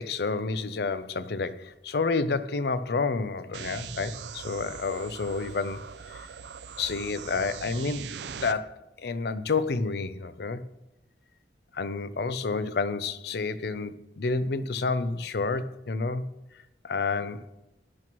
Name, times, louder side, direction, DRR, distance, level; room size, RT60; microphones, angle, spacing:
voice 1, 0.0-6.3 6.8-8.1 8.3-10.6 11.7-16.2 16.8-17.5, left 4 dB, 60° left, 0.5 m, -30 dB
sound 1, 3.5-8.5, right 6 dB, 75° right, 0.5 m, -41 dB
12.0 x 10.5 x 3.0 m
head